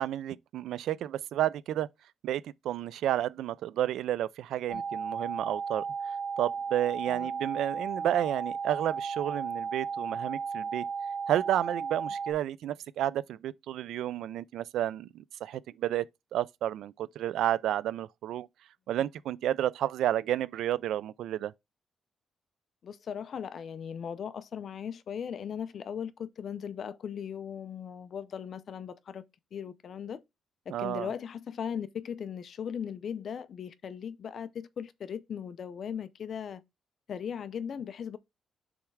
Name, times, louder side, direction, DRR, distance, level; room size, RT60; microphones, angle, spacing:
voice 1, 0.0-1.9 2.2-10.8 11.3-18.5 18.9-21.5 30.7-31.1, right 12 dB, 85° right, 0.4 m, -31 dB
sound 1, 4.7-12.3, right 5 dB, 30° right, 0.9 m, -34 dB
voice 2, 22.8-29.2 29.5-30.2 30.7-36.6 37.1-38.2, left 8 dB, 50° left, 0.5 m, -38 dB
7.0 x 3.3 x 4.6 m
cardioid pair, 155°, 0 cm